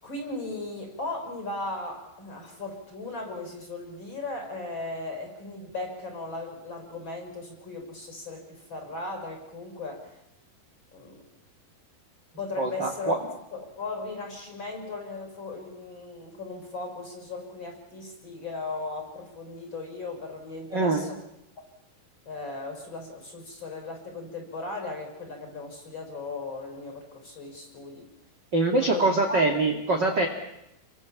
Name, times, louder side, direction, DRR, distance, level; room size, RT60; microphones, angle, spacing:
voice 1, 0.0-10.1 10.9-11.2 12.4-13.1 13.5-21.2 22.2-28.1 28.8-29.4, left 3 dB, 25° left, 3 dB, 6.6 m, -37 dB
voice 2, 12.6-13.2 20.7-21.0 28.5-30.3, right 2 dB, 30° right, 2 dB, 2.4 m, -24 dB
30.0 x 24.0 x 7.4 m, 0.86 s
omnidirectional pair, 4.8 m